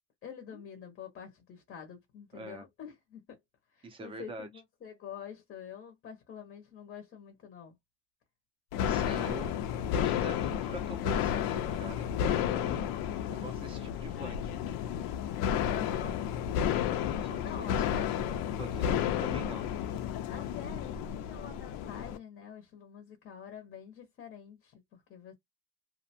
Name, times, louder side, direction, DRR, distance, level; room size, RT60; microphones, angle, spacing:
voice 1, 0.2-3.4 3.7-7.8 9.1-9.4 15.7-16.2 17.4-17.8 20.3-25.3, left 7 dB, 30° left, 0.6 m, -47 dB
voice 2, 2.3-2.7 3.8-4.5 8.8-9.5 9.9-12.9 13.3-14.5 17.0-19.7, right 3 dB, 15° right, 0.5 m, -45 dB
sound 1, 8.7-22.2, left 9 dB, 75° left, 0.5 m, -32 dB
2.5 x 2.1 x 2.7 m
cardioid pair, 175°, 34 cm